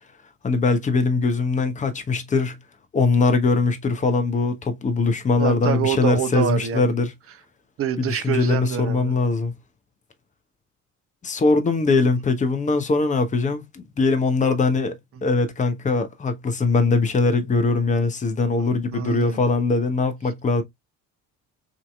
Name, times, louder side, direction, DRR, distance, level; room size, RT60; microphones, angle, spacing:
voice 1, 0.4-2.6 2.9-7.1 8.0-9.5 11.2-14.9 15.2-20.6, left 3 dB, 15° left, 0.8 m, -21 dB
voice 2, 5.4-7.0 7.8-9.2 15.2-15.3 18.6-19.4, right 9 dB, 30° right, 0.7 m, -27 dB
5.1 x 2.8 x 2.3 m
figure-of-eight pair, 55°, 43 cm